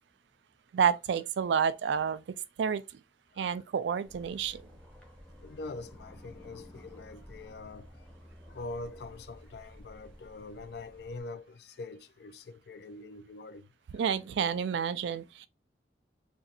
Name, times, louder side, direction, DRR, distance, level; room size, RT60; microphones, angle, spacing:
voice 1, 0.7-2.2 2.6-2.8 3.4-4.6 13.9-15.5, right 7 dB, 85° right, 0.3 m, -29 dB
voice 2, 3.3-3.6 5.4-8.1 8.5-13.7, left 3 dB, 65° left, 0.3 m, -44 dB
sound 1, 4.0-11.2, equal, 5° left, 0.7 m, -52 dB
2.6 x 2.4 x 4.0 m
head